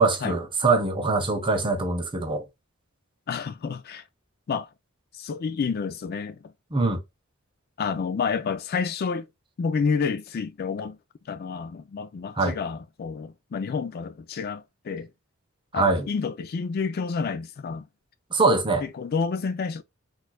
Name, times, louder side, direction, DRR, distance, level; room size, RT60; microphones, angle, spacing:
voice 1, 0.0-2.4 6.7-7.0 12.4-12.6 15.7-16.0 18.3-18.8, right 3 dB, 25° right, 0.7 m, -23 dB
voice 2, 3.3-4.0 4.5-4.7 5.1-6.5 7.8-9.3 9.6-11.0 11.3-15.1 15.7-17.8 18.8-19.8, left 5 dB, 45° left, 0.4 m, -29 dB
4.3 x 2.4 x 2.2 m
head